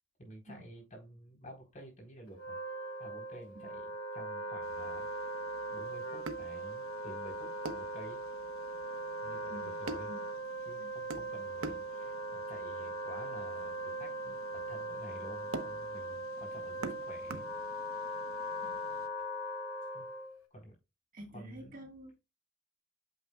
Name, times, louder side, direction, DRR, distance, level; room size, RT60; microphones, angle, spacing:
voice 1, 0.2-2.6 3.0-5.1 5.7-8.2 9.2-10.1 10.7-17.4 19.9-20.1 20.5-20.8 21.3-21.9, right 1 dB, 35° left, 4.0 m, -51 dB
Wind instrument woodwind instrument, 2.3-20.4, right 1 dB, 85° left, 1.8 m, -40 dB
sound 1, 4.6-19.1, right 3 dB, 70° right, 0.9 m, -48 dB
voice 2, 21.1-22.2, equal, 40° right, 1.7 m, -49 dB
8.6 x 7.2 x 2.4 m
head